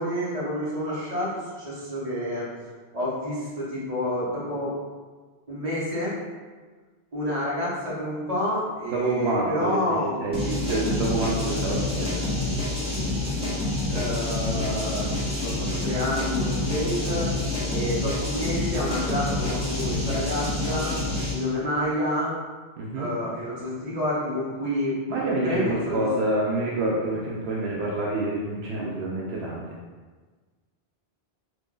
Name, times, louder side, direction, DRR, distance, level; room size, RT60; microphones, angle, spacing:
voice 1, 0.0-4.7 5.5-6.2 7.1-10.2 13.9-15.1 15.4-17.3 17.7-20.9 21.3-22.3 23.0-25.0 25.4-26.1, left 1 dB, 35° right, -8 dB, 1.1 m, -29 dB
voice 2, 8.9-9.8 10.2-12.5 22.8-23.1 25.1-29.6, right 2 dB, 75° right, -4 dB, 0.8 m, -27 dB
sound 1, 10.3-21.5, left 2 dB, 5° right, 1.1 m, -27 dB
2.9 x 2.5 x 3.7 m, 1.4 s
omnidirectional pair, 1.1 m